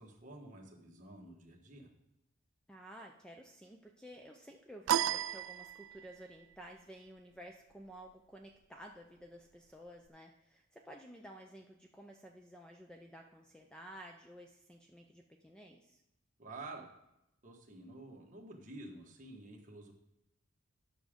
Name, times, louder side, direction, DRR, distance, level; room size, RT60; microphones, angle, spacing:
voice 1, 0.0-1.9 16.4-16.9 17.4-19.9, right 2 dB, 35° right, 0 dB, 1.4 m, -50 dB
voice 2, 2.7-16.0, equal, 5° left, 2 dB, 0.5 m, -53 dB
sound 1, 4.9-6.2, right 10 dB, 80° right, 0.3 m, -33 dB
9.3 x 6.2 x 5.1 m, 0.86 s
head